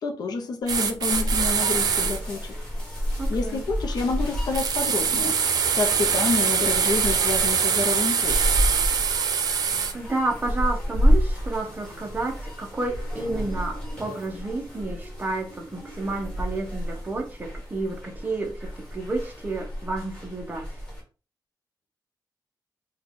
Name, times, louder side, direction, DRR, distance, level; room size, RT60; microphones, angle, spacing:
voice 1, 0.0-2.6 3.3-5.4 5.7-8.5, left 3 dB, 70° left, 0.7 m, -28 dB
sound 1, 0.7-2.2 4.5-9.9, right 6 dB, 65° right, 0.5 m, -23 dB
sound 2, 1.1-21.0, equal, 10° left, 1.5 m, -30 dB
voice 2, 3.2-3.6 9.9-20.7, right 2 dB, 25° right, 0.7 m, -31 dB
4.2 x 2.3 x 3.6 m
wide cardioid pair, 170°, 7 cm